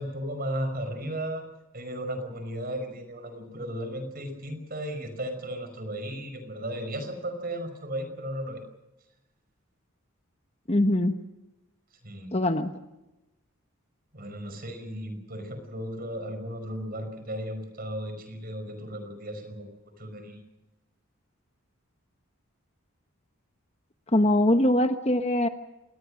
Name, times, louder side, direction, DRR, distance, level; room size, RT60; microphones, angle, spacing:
voice 1, 0.0-1.4 1.7-8.6 12.0-12.3 14.1-19.7 20.0-20.4, right 1 dB, 45° right, 8 dB, 5.5 m, -35 dB
voice 2, 10.7-11.1 12.3-12.7 24.1-25.5, left 1 dB, 30° left, 8 dB, 1.2 m, -22 dB
27.5 x 20.0 x 6.5 m, 0.96 s
head